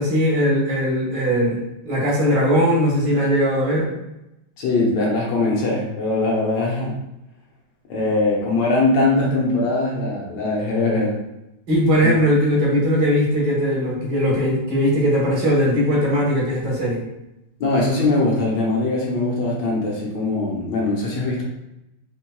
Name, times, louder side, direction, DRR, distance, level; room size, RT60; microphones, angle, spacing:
voice 1, 0.0-3.9 11.7-17.0, equal, 75° right, -4 dB, 1.8 m, -19 dB
voice 2, 4.6-7.0 7.9-11.2 12.0-12.1 17.6-21.4, left 2 dB, 80° left, -3 dB, 1.6 m, -21 dB
4.4 x 3.0 x 2.2 m, 0.88 s
omnidirectional pair, 1.9 m